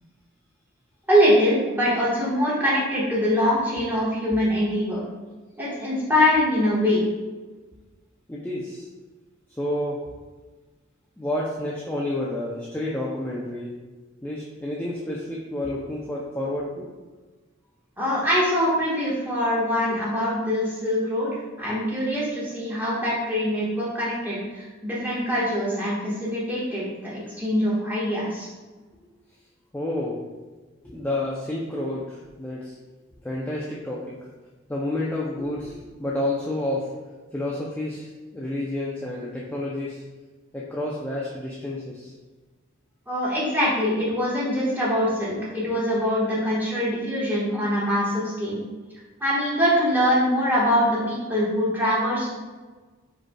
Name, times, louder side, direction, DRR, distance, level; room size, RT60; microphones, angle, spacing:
voice 1, 1.1-5.0 5.6-7.0 18.0-21.3 21.6-28.5 43.1-48.6 49.2-52.3, equal, 10° right, -7 dB, 1.4 m, -23 dB
voice 2, 8.3-8.9 9.6-10.0 11.2-13.7 14.2-16.9 29.7-30.2 30.8-32.8 33.2-34.2 34.7-36.9 37.3-40.0 40.5-42.1, left 1 dB, 10° left, -5 dB, 0.4 m, -30 dB
5.0 x 4.5 x 2.2 m, 1.3 s
head